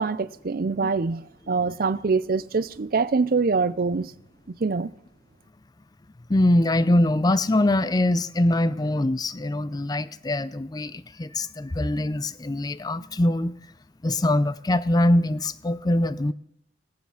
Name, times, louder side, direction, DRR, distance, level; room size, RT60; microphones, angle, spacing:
voice 1, 0.0-4.1 4.5-4.9, right 4 dB, 55° right, 0.5 m, -24 dB
voice 2, 6.3-13.5 14.0-16.3, left 1 dB, 20° left, 0.5 m, -23 dB
17.5 x 9.6 x 5.7 m
head